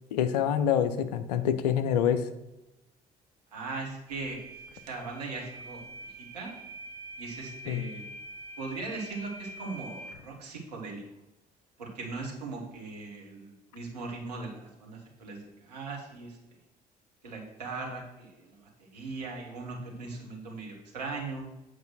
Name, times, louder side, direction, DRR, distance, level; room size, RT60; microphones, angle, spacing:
voice 1, 0.1-2.2 7.7-7.9, left 9 dB, 75° left, 11 dB, 0.6 m, -26 dB
voice 2, 3.5-6.5 7.2-8.0 8.6-11.0 11.8-16.4 17.2-21.5, right 3 dB, 85° right, -1 dB, 1.6 m, -39 dB
sound 1, 4.1-10.2, right 1 dB, 60° right, 1.1 m, -45 dB
8.1 x 4.8 x 6.1 m, 0.94 s
figure-of-eight pair, 50°, 21 cm